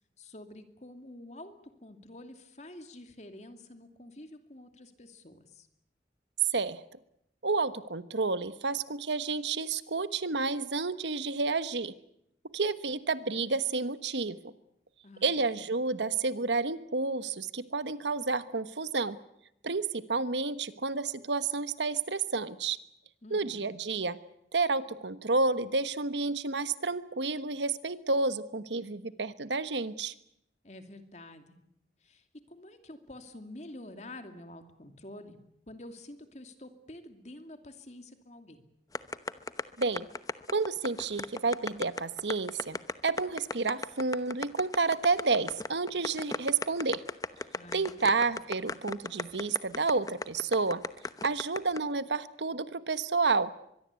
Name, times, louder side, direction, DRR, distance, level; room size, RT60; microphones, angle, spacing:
voice 1, 0.2-1.5 1.8-5.7 15.0-15.3 15.6-15.7 23.2-23.8 30.6-31.6 32.0-35.4 35.7-38.6 47.5-48.2, left 1 dB, 40° left, 7 dB, 2.6 m, -48 dB
voice 2, 7.4-11.9 12.5-14.4 15.2-19.2 19.6-22.8 23.3-24.2 24.5-30.1 39.8-40.1 40.5-47.0 47.7-50.8 51.2-53.5, right 4 dB, 90° right, 13 dB, 1.3 m, -30 dB
sound 1, 38.9-51.8, left 3 dB, 20° left, 0.9 m, -35 dB
24.0 x 22.0 x 8.4 m, 0.78 s
head